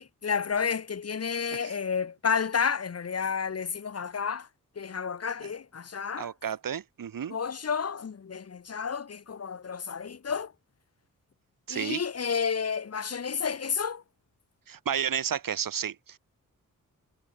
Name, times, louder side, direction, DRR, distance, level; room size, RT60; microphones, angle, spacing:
voice 1, 0.0-4.5 4.8-6.3 7.3-10.5 11.7-14.0, left 6 dB, 50° left, 2.1 m, -31 dB
voice 2, 6.2-7.4 11.7-12.0 14.7-16.2, right 8 dB, 90° right, 5.0 m, -32 dB
wide cardioid pair, 140°, 33 cm